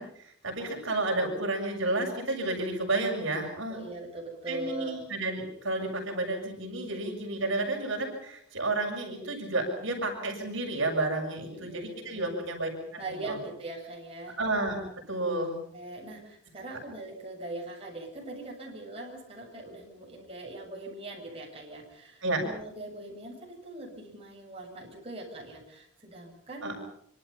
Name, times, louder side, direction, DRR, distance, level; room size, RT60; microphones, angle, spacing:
voice 1, 0.0-3.8 4.5-13.4 14.4-14.8 15.1-15.6 22.2-22.4 26.6-26.7, right 2 dB, 60° right, 2 dB, 7.0 m, -31 dB
voice 2, 3.7-5.0 11.4-12.3 12.9-14.4 15.7-26.7, right 2 dB, 25° right, -1 dB, 7.8 m, -41 dB
26.5 x 25.5 x 5.8 m, 0.69 s
head